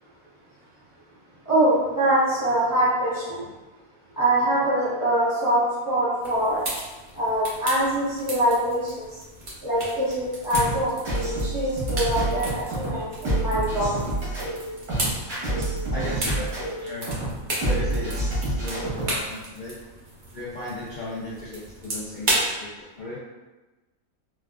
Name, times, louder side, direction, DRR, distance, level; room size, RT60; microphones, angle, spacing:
voice 1, 1.5-3.4 4.2-6.6 7.1-9.1 9.6-10.9 11.2-14.0, right 1 dB, 15° left, -12 dB, 0.8 m, -23 dB
sound 1, 6.2-22.5, right 1 dB, 40° right, 0.8 m, -34 dB
sound 2, 10.5-19.2, right 1 dB, 75° right, 1.8 m, -28 dB
voice 2, 15.9-16.5 16.8-17.2 17.6-19.8 20.3-22.7 22.9-23.2, left 1 dB, 70° left, -8 dB, 0.4 m, -36 dB
4.2 x 2.3 x 2.3 m, 1.2 s
omnidirectional pair, 1.6 m